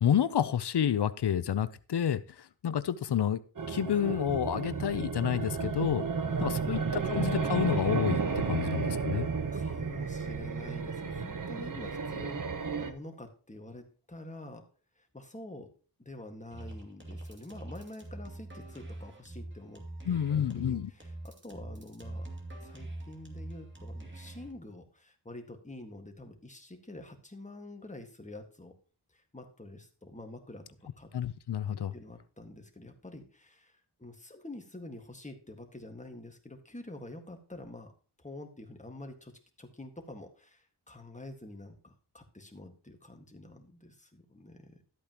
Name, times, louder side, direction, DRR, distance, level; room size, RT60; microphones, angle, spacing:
voice 1, 0.0-3.4 3.7-6.0 6.4-9.3 20.1-20.9 31.1-31.9, left 9 dB, 70° left, 13 dB, 0.6 m, -29 dB
sound 1, 3.6-12.9, right 5 dB, 45° right, 1.0 m, -32 dB
voice 2, 6.3-7.3 9.5-12.5 12.8-14.6 15.0-15.7 16.0-22.3 22.6-28.7 29.1-30.6 31.0-31.1 31.7-33.7 34.0-37.9 38.2-44.8, left 2 dB, 15° left, 4 dB, 1.7 m, -47 dB
sound 2, 16.5-24.5, right 1 dB, 25° right, 2.4 m, -44 dB
12.5 x 8.4 x 3.0 m, 0.37 s
wide cardioid pair, 80°, 42 cm